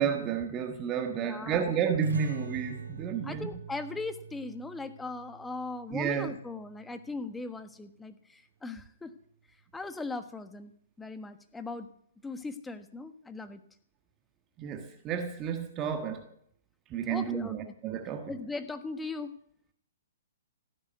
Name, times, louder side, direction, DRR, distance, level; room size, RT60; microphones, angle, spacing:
voice 1, 0.0-3.5 5.9-6.3 14.6-16.3 16.9-18.3, right 7 dB, 25° right, 1.4 m, -31 dB
voice 2, 1.2-1.6 3.2-9.1 9.7-10.7 11.0-11.9 12.2-13.6 17.1-17.7 18.3-19.3, left 3 dB, 10° left, 1.3 m, -39 dB
sound 1, 2.0-7.2, right 6 dB, 90° right, 4.3 m, -45 dB
15.5 x 9.9 x 8.1 m
hypercardioid pair, 135°, 0 cm